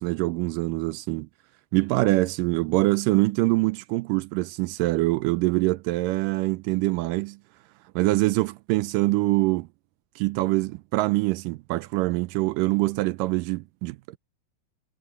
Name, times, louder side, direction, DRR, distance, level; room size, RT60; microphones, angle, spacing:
voice 1, 0.0-1.3 1.7-7.4 8.0-9.7 10.2-14.2, right 21 dB, 80° right, 2.1 m, -24 dB
omnidirectional pair, 4.0 m